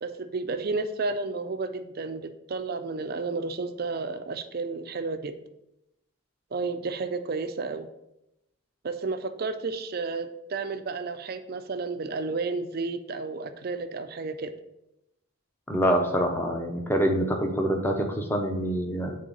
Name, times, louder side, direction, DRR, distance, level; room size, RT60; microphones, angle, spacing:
voice 1, 0.0-5.4 6.5-7.9 8.8-14.5, right 3 dB, 45° right, 9 dB, 0.4 m, -32 dB
voice 2, 15.7-19.2, equal, 10° left, 2 dB, 0.7 m, -25 dB
7.6 x 3.6 x 3.9 m, 0.87 s
head